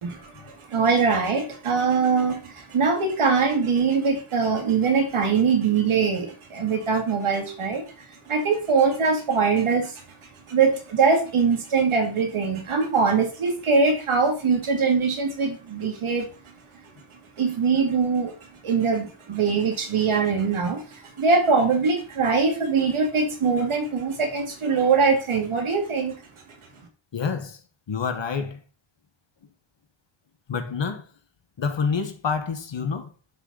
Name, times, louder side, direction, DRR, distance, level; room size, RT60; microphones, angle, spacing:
voice 1, 0.0-10.0 10.5-16.3 17.4-18.3 18.6-26.2, right 5 dB, 75° right, 2.4 m, -22 dB
voice 2, 27.1-27.6 27.9-28.6 30.5-31.1 31.6-33.1, left 5 dB, 60° left, 1.7 m, -27 dB
11.0 x 6.5 x 4.2 m
wide cardioid pair, 175°, 49 cm